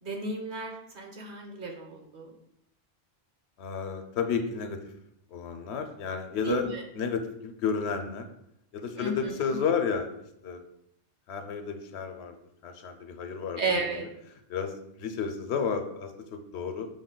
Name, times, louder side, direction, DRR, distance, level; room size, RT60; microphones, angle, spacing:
voice 1, 0.0-2.3 6.4-6.8 9.0-9.6 13.6-14.0, right 3 dB, 55° right, 1 dB, 0.9 m, -33 dB
voice 2, 3.6-4.9 5.3-6.7 6.9-8.3 8.7-10.1 10.4-10.6 11.3-12.4 12.6-13.6 14.5-16.9, left 6 dB, 85° left, 7 dB, 0.8 m, -31 dB
5.2 x 2.2 x 3.8 m, 0.78 s
omnidirectional pair, 1.1 m